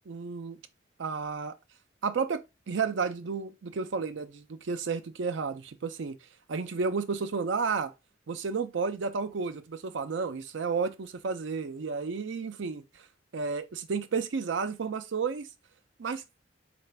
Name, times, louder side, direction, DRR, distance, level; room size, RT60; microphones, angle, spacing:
voice 1, 0.1-0.6 1.0-1.5 2.0-2.4 2.7-6.2 6.5-7.9 8.3-12.8 13.3-15.5 16.0-16.2, right 5 dB, 80° right, 0.5 m, -32 dB
3.9 x 2.5 x 3.3 m
head